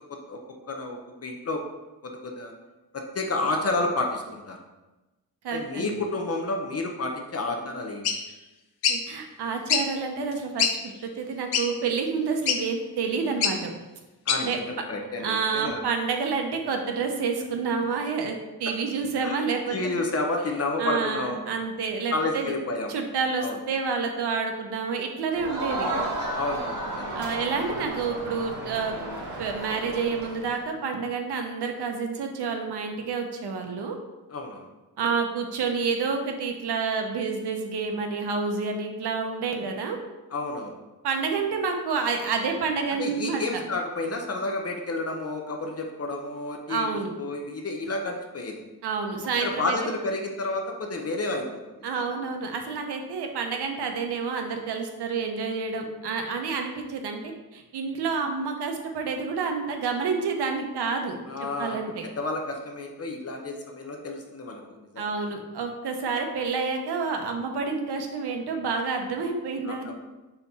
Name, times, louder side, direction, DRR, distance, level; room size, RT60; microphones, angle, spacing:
voice 1, 0.7-1.6 2.0-2.5 2.9-4.6 5.5-8.1 14.3-15.9 19.2-21.4 22.1-23.0 23.4-23.6 26.3-27.2 34.3-34.7 40.3-40.7 43.0-46.9 47.2-48.6 49.4-51.9 61.3-65.0 69.6-69.9, left 2 dB, 40° left, 2 dB, 0.7 m, -30 dB
voice 2, 5.4-6.0 8.9-13.7 14.4-14.6 15.2-20.0 20.8-22.5 22.9-25.9 27.1-28.9 29.4-34.0 35.0-40.0 41.0-43.6 46.7-47.1 48.8-49.9 51.8-61.2 61.6-61.9 65.0-69.9, right 5 dB, 85° right, 4 dB, 0.9 m, -29 dB
sound 1, 8.0-8.2 8.8-9.0 9.7-9.9 10.3-10.4 10.6-10.7 11.5-11.7 12.5-12.6 13.4-13.6 14.3-14.4, left 7 dB, 75° left, 0.7 m, -23 dB
Crowd, 25.3-30.7, right 1 dB, 50° right, 1.8 m, -33 dB
4.4 x 3.9 x 5.4 m, 1.1 s
wide cardioid pair, 145°, 39 cm